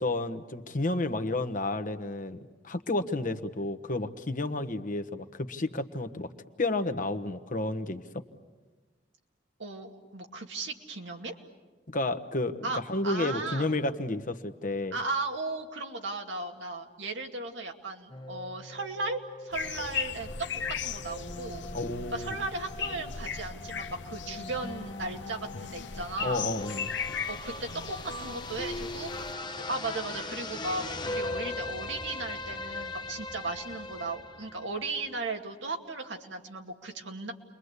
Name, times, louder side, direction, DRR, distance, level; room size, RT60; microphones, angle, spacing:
voice 1, 0.0-6.3 6.6-8.2 11.9-15.0 21.7-22.4 26.2-26.9, left 2 dB, 45° left, 9 dB, 1.2 m, -31 dB
voice 2, 9.6-11.3 12.6-13.7 14.9-20.3 20.8-21.6 22.1-26.5 27.3-29.1 29.7-37.3, right 3 dB, 90° right, 3 dB, 2.3 m, -36 dB
sound 1, 18.1-35.2, left 2 dB, 25° left, 0.9 m, -40 dB
sound 2, 19.5-29.3, left 6 dB, 70° left, 1.0 m, -38 dB
29.5 x 22.5 x 8.2 m, 1.3 s
head